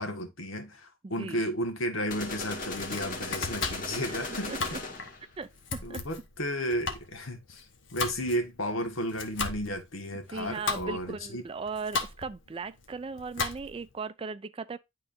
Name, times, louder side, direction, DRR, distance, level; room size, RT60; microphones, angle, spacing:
voice 1, 0.0-4.5 5.8-7.7 7.9-11.4, equal, 85° left, 1.7 m, -33 dB
voice 2, 1.0-1.4 4.0-4.2 4.5-4.8 5.4-6.0 10.3-14.8, right 4 dB, 25° right, 0.4 m, -38 dB
sound 1, 2.1-5.3, left 2 dB, 45° left, 1.9 m, -37 dB
Domestic sounds home sounds, 2.5-13.9, left 4 dB, 65° left, 1.3 m, -37 dB
11.0 x 3.8 x 2.6 m
head